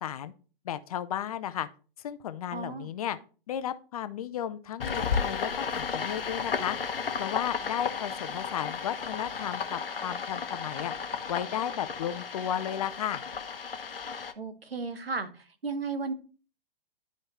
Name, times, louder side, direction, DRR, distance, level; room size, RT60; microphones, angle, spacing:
voice 1, 0.0-0.3 0.6-1.7 2.0-3.2 3.5-6.8 7.1-10.9 11.3-13.2, left 10 dB, 40° left, 13 dB, 0.6 m, -34 dB
voice 2, 2.5-2.9 14.4-16.1, right 4 dB, 75° right, 9 dB, 1.3 m, -34 dB
sound 1, 4.8-14.3, left 5 dB, 70° left, 0.9 m, -34 dB
11.0 x 5.2 x 3.1 m, 0.37 s
figure-of-eight pair, 115°, 30 cm